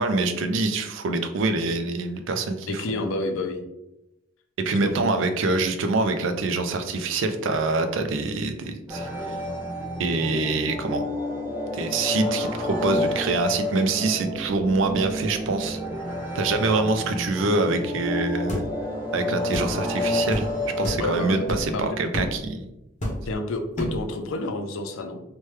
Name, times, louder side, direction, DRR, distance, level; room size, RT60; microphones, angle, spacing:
voice 1, 0.0-3.0 4.6-9.4 10.0-11.1 11.7-15.8 16.3-18.6 19.1-20.5 20.8-22.7, right 3 dB, 75° right, 8 dB, 0.4 m, -25 dB
voice 2, 2.7-3.6 4.8-5.1 21.0-21.4 21.7-22.0 23.2-25.2, left 2 dB, 85° left, 6 dB, 0.4 m, -29 dB
sound 1, 8.9-21.9, left 1 dB, 10° right, 0.5 m, -30 dB
sound 2, 18.5-18.7 19.5-19.7 20.3-20.5 20.8-21.1 21.5-21.7 22.1-22.4 23.0-23.4 23.8-24.1, equal, 35° left, 0.6 m, -29 dB
3.1 x 2.2 x 3.1 m, 0.89 s
head